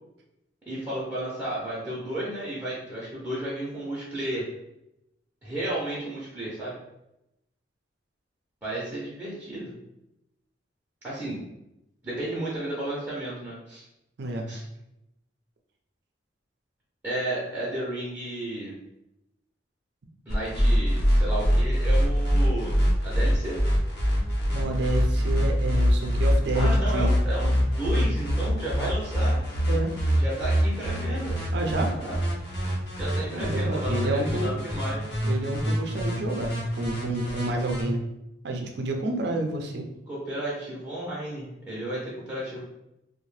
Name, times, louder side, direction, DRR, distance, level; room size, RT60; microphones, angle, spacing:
voice 1, 0.7-4.5 5.4-6.8 8.6-9.7 11.0-11.4 12.0-13.8 14.5-14.6 17.0-18.7 20.3-22.7 23.0-23.6 26.5-29.4 30.1-31.4 31.9-32.2 33.0-35.0 40.1-42.6, right 1 dB, 10° right, -9 dB, 0.6 m, -33 dB
voice 2, 14.2-14.5 24.5-27.1 29.7-29.9 31.5-32.0 33.3-34.5 35.2-38.0 38.4-39.9, right 2 dB, 65° right, 3 dB, 0.4 m, -29 dB
sound 1, 20.3-37.8, equal, 60° left, 0.9 m, -24 dB
2.7 x 2.1 x 3.1 m, 0.87 s
head